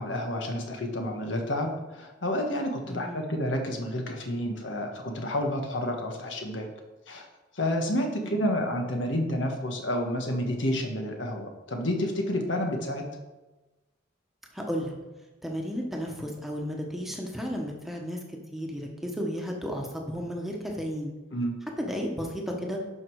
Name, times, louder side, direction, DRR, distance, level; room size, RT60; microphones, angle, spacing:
voice 1, 0.0-6.7 7.1-7.3 7.5-13.1 21.3-21.6, left 1 dB, 80° left, 3 dB, 1.6 m, -30 dB
voice 2, 2.9-3.3 8.2-8.4 14.5-14.9 15.4-18.2 18.5-21.1 21.8-22.8, equal, ahead, 0 dB, 1.2 m, -33 dB
11.5 x 5.4 x 4.8 m, 1.1 s
head